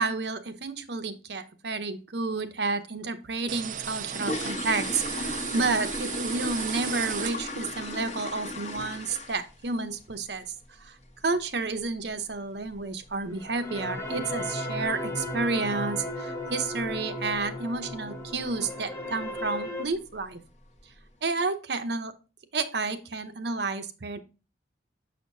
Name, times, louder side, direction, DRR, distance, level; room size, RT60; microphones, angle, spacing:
voice 1, 0.0-10.4 10.8-11.0 11.2-20.4 21.2-22.1 22.5-24.2, right 3 dB, 60° right, 9 dB, 0.8 m, -30 dB
sound 1, 3.5-7.8, right 9 dB, 45° right, 0.4 m, -36 dB
sound 2, 3.8-9.7 9.9-10.2 10.6-10.7 11.0-11.2 11.6-11.8 12.0-12.1 12.7-12.8 13.1-13.2 13.7-14.1 14.3-14.4 14.8-15.0 15.4-15.5 15.9-16.0 16.6-16.9 17.2-17.6 17.9-18.0 18.5-18.6 19.3-19.5 19.9-20.3 20.8-20.9, left 1 dB, 35° left, 1.1 m, -36 dB
sound 3, 13.3-19.8, left 1 dB, 15° left, 0.8 m, -35 dB
6.6 x 6.5 x 2.7 m, 0.31 s
head